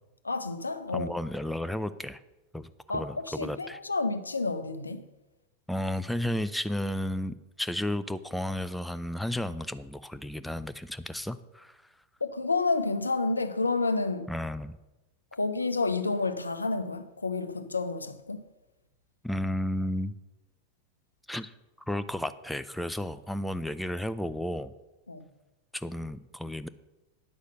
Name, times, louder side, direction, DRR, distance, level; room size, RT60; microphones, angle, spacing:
voice 1, 0.2-1.1 2.9-5.0 12.2-14.3 15.3-18.4 25.1-25.3, left 3 dB, 80° left, 0.7 m, -30 dB
voice 2, 0.9-2.2 2.5-3.8 5.7-11.8 14.3-14.8 19.2-20.1 21.3-21.5 21.9-24.7 25.7-26.7, left 1 dB, ahead, 0.4 m, -33 dB
9.7 x 6.5 x 6.5 m
figure-of-eight pair, 90°, 0 cm